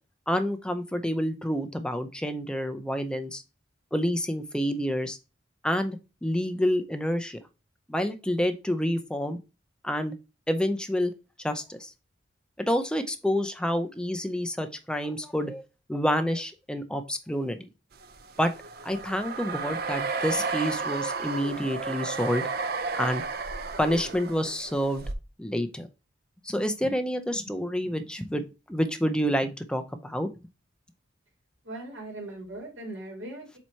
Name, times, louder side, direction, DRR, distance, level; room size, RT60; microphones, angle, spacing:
voice 1, 0.3-3.4 3.9-5.2 5.6-7.4 7.9-9.4 9.8-10.2 10.5-11.1 11.4-11.9 12.7-17.6 18.4-18.5 18.8-22.4 22.9-23.2 23.8-25.0 25.4-25.9 26.4-28.4 28.7-30.3, equal, 5° left, 8 dB, 0.6 m, -28 dB
sound 1, 18.0-25.1, right 4 dB, 55° right, 0.7 m, -33 dB
voice 2, 31.6-33.6, right 1 dB, 85° right, -2 dB, 2.3 m, -39 dB
7.3 x 2.9 x 4.5 m, 0.29 s
head